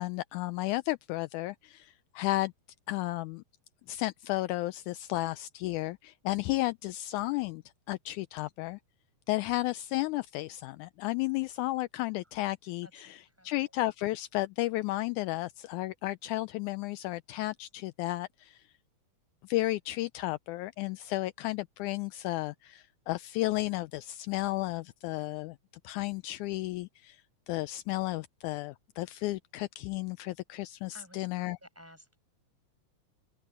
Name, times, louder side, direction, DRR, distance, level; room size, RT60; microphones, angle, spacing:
voice 1, 0.0-2.5 2.9-3.4 3.9-7.6 7.9-8.8 9.3-18.6 19.4-25.6 25.8-27.2 27.5-31.6, left 18 dB, 80° left, 1.9 m, -33 dB
voice 2, 12.8-13.6 30.9-32.2, equal, 5° right, 7.2 m, -55 dB
open air
omnidirectional pair, 3.6 m